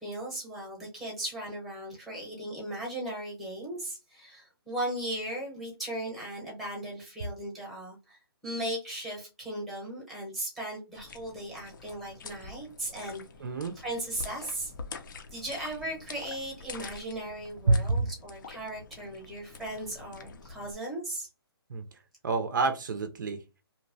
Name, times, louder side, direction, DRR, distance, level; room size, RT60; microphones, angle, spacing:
voice 1, 0.0-13.2 13.7-14.7 15.3-21.3, right 1 dB, ahead, -2 dB, 0.8 m, -37 dB
sound 1, 10.9-20.7, left 4 dB, 50° left, 0.5 m, -46 dB
voice 2, 13.4-13.7 17.7-18.1 21.7-21.9 22.2-23.4, right 3 dB, 50° right, 6 dB, 0.5 m, -27 dB
2.8 x 2.1 x 2.6 m, 0.27 s
hypercardioid pair, 165°, 13 cm